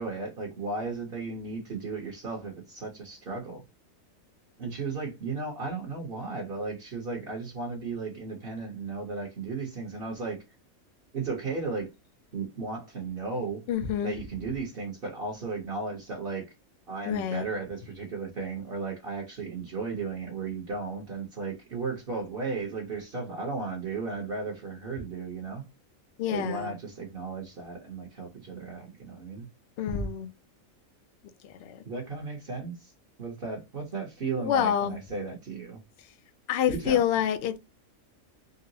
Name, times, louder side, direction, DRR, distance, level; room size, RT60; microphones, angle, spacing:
voice 1, 0.0-3.6 4.6-10.4 11.1-11.9 12.3-13.6 14.0-16.5 16.9-25.6 26.3-29.5 31.9-32.9 33.2-35.8 36.7-37.0, right 4 dB, 45° right, 1.0 m, -35 dB
voice 2, 13.7-14.1 17.1-17.4 26.2-26.8 29.8-30.3 31.4-31.8 34.4-35.0 36.5-37.6, left 9 dB, 65° left, 0.7 m, -27 dB
3.8 x 2.0 x 2.7 m
omnidirectional pair, 1.4 m